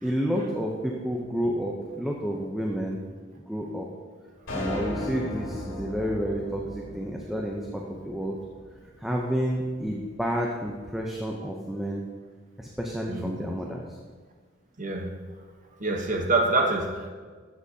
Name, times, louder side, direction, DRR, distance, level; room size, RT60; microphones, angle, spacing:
voice 1, 0.0-3.0 3.5-3.9 4.5-8.4 9.0-12.0 12.6-14.0, equal, ahead, -1 dB, 0.6 m, -30 dB
sound 1, 4.5-8.9, left 1 dB, 65° left, 2.7 m, -36 dB
voice 2, 14.8-15.1 15.8-17.1, right 2 dB, 40° right, 2 dB, 1.0 m, -25 dB
13.0 x 7.5 x 2.8 m, 1.5 s
head